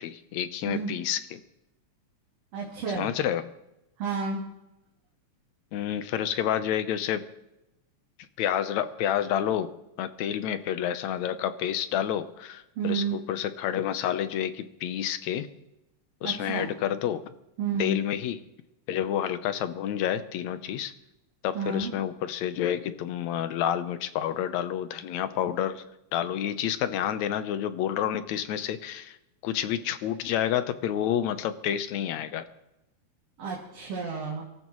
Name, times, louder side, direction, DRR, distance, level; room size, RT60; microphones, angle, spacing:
voice 1, 0.0-1.4 3.0-3.4 5.7-7.2 8.4-15.5 16.2-17.2 17.8-18.4 18.9-20.9 21.4-25.8 26.1-29.2 29.4-32.5, left 10 dB, 75° left, 11 dB, 2.0 m, -29 dB
voice 2, 2.5-3.1 4.0-4.4 12.7-13.2 16.2-16.7 17.6-18.0 21.5-21.9 33.4-34.4, right 5 dB, 55° right, -3 dB, 3.3 m, -31 dB
24.0 x 13.5 x 3.1 m, 0.90 s
omnidirectional pair, 3.5 m